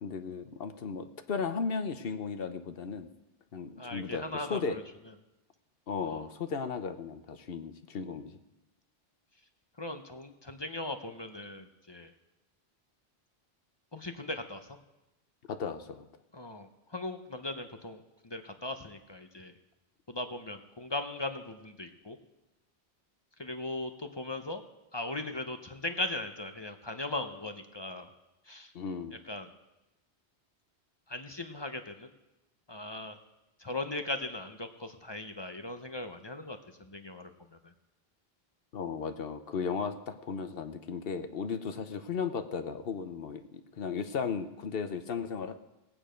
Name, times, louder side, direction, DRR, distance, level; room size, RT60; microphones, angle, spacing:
voice 1, 0.0-3.1 3.5-4.8 5.9-8.4 15.5-16.1 28.7-29.2 38.7-45.5, left 5 dB, 70° left, 9 dB, 1.0 m, -35 dB
voice 2, 3.8-4.8 6.0-6.2 9.8-12.1 13.9-14.7 16.3-19.5 20.1-22.2 23.4-24.6 24.9-28.1 28.5-28.7 29.1-29.5 31.1-32.1 32.7-33.2 33.6-37.3 37.6-37.7, left 2 dB, 30° left, 7 dB, 0.7 m, -38 dB
17.5 x 8.9 x 5.1 m, 0.98 s
omnidirectional pair, 1.1 m